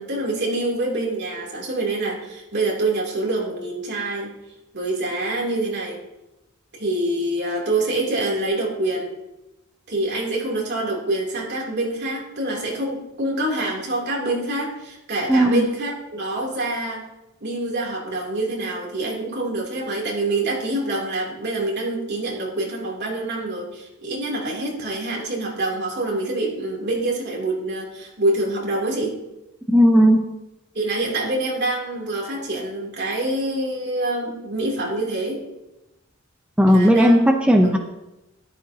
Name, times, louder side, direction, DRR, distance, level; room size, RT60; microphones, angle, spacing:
voice 1, 0.0-4.3 4.7-6.0 6.7-9.1 9.9-17.0 17.4-29.2 30.7-35.4 36.7-37.3 37.6-37.8, right 2 dB, 55° right, -2 dB, 3.1 m, -26 dB
voice 2, 15.3-15.7 29.7-30.3 36.6-37.8, equal, 5° right, 1 dB, 0.7 m, -15 dB
13.5 x 12.0 x 2.9 m, 0.95 s
head